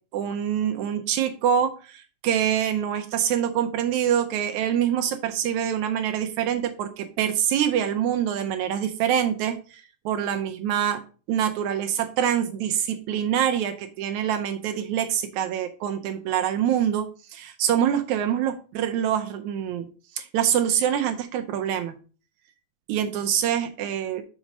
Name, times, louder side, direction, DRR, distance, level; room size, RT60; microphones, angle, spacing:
voice 1, 0.1-11.0 11.3-19.9 20.1-21.9 22.9-24.2, right 9 dB, 80° right, 7 dB, 1.7 m, -25 dB
6.1 x 5.0 x 5.3 m, 0.37 s
omnidirectional pair, 4.0 m